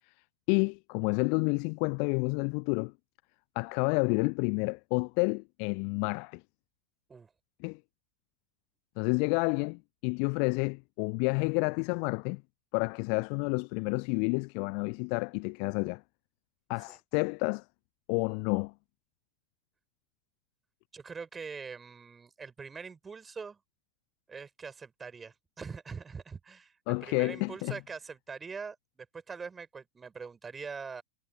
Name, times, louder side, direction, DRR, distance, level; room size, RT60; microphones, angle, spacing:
voice 1, 0.5-2.9 3.6-6.4 7.6-7.8 9.0-12.4 12.7-16.0 16.7-17.6 18.1-18.7 26.9-27.8, left 40 dB or more, 45° left, 0.6 m, -30 dB
voice 2, 20.9-23.6 24.3-31.0, right 5 dB, 15° right, 6.8 m, -43 dB
figure-of-eight pair, 90°, 0 cm